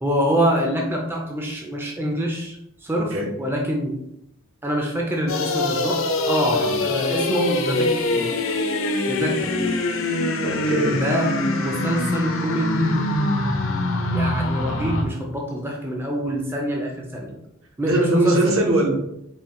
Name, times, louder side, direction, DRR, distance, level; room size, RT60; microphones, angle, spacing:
voice 1, 0.0-3.1 3.4-4.0 4.6-6.0 6.3-8.3 9.1-9.7 10.9-11.3 11.6-13.1 14.1-17.4 17.8-18.6, equal, 10° right, -1 dB, 0.4 m, -25 dB
voice 2, 2.9-3.3 6.6-6.7 10.4-11.0 17.8-18.9, right 2 dB, 65° right, 1 dB, 0.9 m, -21 dB
sound 1, 5.3-15.0, left 2 dB, 65° left, 0.5 m, -24 dB
4.3 x 2.3 x 3.6 m, 0.81 s
head